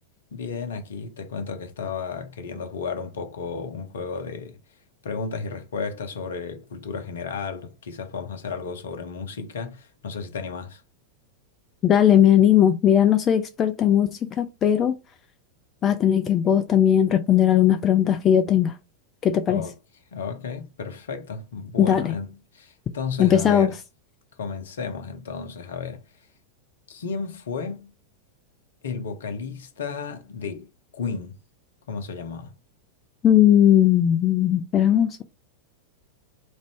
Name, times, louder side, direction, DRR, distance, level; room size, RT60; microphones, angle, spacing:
voice 1, 0.3-4.6 5.0-10.8 19.5-19.7 20.1-23.7 24.4-26.0 26.9-27.9 28.8-30.7 30.9-31.3 31.9-32.5, left 5 dB, 65° left, 0.6 m, -33 dB
voice 2, 11.8-15.0 15.8-18.8 19.2-19.6 21.8-22.1 23.2-23.7 33.2-35.2, left 10 dB, 25° left, 0.3 m, -18 dB
3.1 x 2.6 x 3.2 m
figure-of-eight pair, 90°, 0 cm